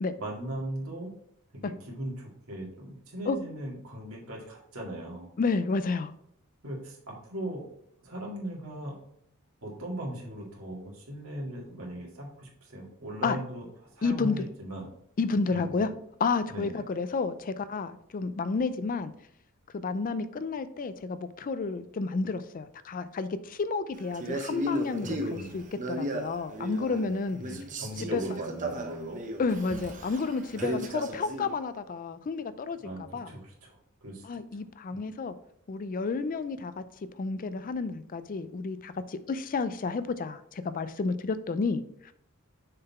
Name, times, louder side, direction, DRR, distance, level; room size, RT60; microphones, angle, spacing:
voice 1, 0.2-1.1 1.5-5.3 6.6-7.6 8.0-8.9 9.6-14.9 15.5-15.9 16.5-16.8 25.0-25.6 27.3-29.2 30.5-30.8 32.8-34.3 34.9-35.0, right 1 dB, 75° right, -2 dB, 2.1 m, -39 dB
voice 2, 5.4-6.1 13.2-13.4 14.0-14.4 15.2-15.9 16.2-19.1 19.7-27.4 28.0-28.2 29.4-32.8 33.1-33.3 34.2-35.3 35.7-36.8 37.2-42.1, left 4 dB, 40° left, 13 dB, 0.4 m, -31 dB
Male speech man speaking, 24.1-27.1 27.4-31.5, right 1 dB, 35° right, 0.8 m, -35 dB
6.6 x 3.9 x 4.2 m, 0.72 s
head